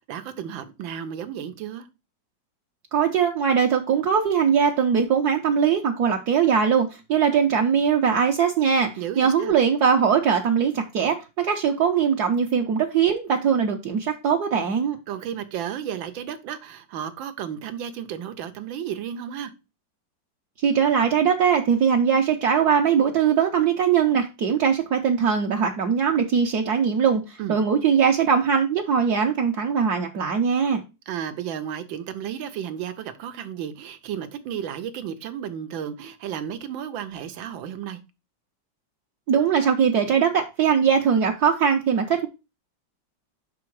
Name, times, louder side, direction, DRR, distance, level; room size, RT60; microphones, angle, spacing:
voice 1, 0.0-1.9 9.0-9.6 15.1-19.5 27.4-27.6 31.1-38.0, right 9 dB, 90° right, 1.6 m, -33 dB
voice 2, 2.9-15.0 20.6-30.8 39.3-42.3, right 7 dB, 65° right, 1.2 m, -21 dB
6.1 x 4.7 x 4.6 m
omnidirectional pair, 2.1 m